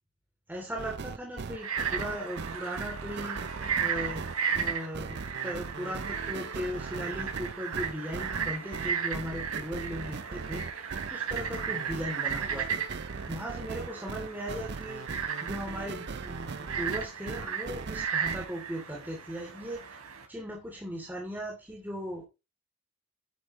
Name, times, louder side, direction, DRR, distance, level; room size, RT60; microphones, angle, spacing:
voice 1, 0.5-3.4 3.8-4.2 4.5-12.8 13.3-15.0 15.4-20.0 20.3-22.2, equal, 10° right, -2 dB, 2.9 m, -38 dB
sound 1, 0.8-18.5, right 4 dB, 50° right, 0.5 m, -39 dB
Frog, 1.5-20.3, right 7 dB, 85° right, 3.4 m, -35 dB
10.5 x 9.8 x 3.1 m, 0.27 s
head